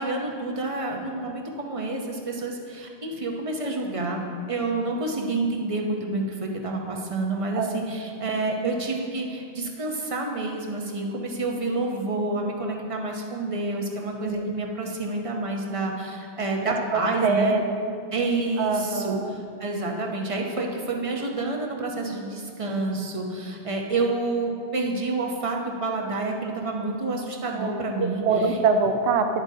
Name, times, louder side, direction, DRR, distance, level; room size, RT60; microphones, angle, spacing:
voice 1, 0.0-4.2 4.5-17.6 18.1-28.2, right 2 dB, 35° right, 1 dB, 0.8 m, -28 dB
voice 2, 14.2-14.5 16.6-17.9 18.6-19.3 27.5-29.4, right 4 dB, 80° right, 6 dB, 0.9 m, -25 dB
10.5 x 8.0 x 2.8 m, 2.3 s
omnidirectional pair, 1.1 m